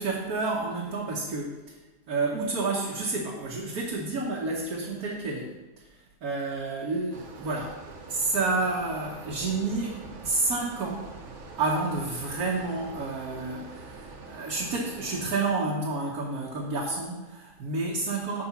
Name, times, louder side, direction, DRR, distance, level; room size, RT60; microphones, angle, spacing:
voice 1, 0.0-1.8 2.1-7.7 8.1-11.1 11.6-18.4, right 3 dB, 80° right, -3 dB, 1.6 m, -30 dB
sound 1, 7.1-15.3, right 3 dB, 55° right, 1.2 m, -44 dB
6.8 x 5.1 x 7.1 m, 1.1 s
omnidirectional pair, 1.6 m